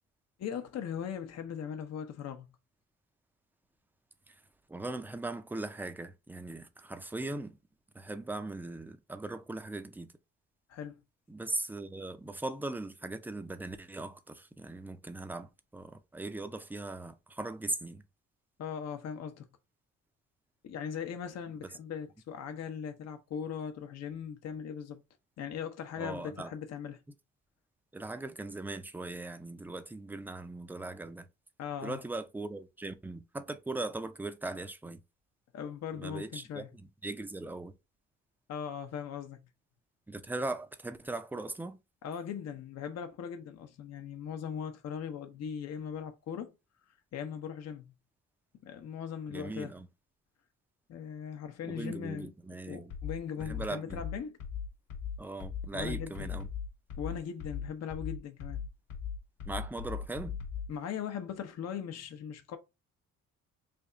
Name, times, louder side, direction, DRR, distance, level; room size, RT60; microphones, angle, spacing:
voice 1, 0.4-2.5 10.7-10.9 18.6-19.5 20.6-25.0 25.4-27.0 31.6-32.0 35.5-36.7 38.5-39.5 42.0-46.5 47.1-47.9 48.6-49.7 50.9-52.3 52.7-54.4 55.7-56.3 57.0-58.6 60.7-62.6, left 8 dB, 60° left, 0.7 m, -39 dB
voice 2, 4.7-7.6 7.9-10.1 11.3-18.0 26.0-26.5 27.9-31.3 31.8-35.0 35.9-37.7 40.1-41.8 49.3-49.9 51.7-52.9 53.4-54.0 55.2-56.5 59.5-60.3, right 2 dB, 5° right, 0.4 m, -39 dB
sound 1, 52.9-60.7, left 7 dB, 85° left, 0.9 m, -39 dB
3.4 x 2.3 x 3.7 m
cardioid pair, 90°, 30 cm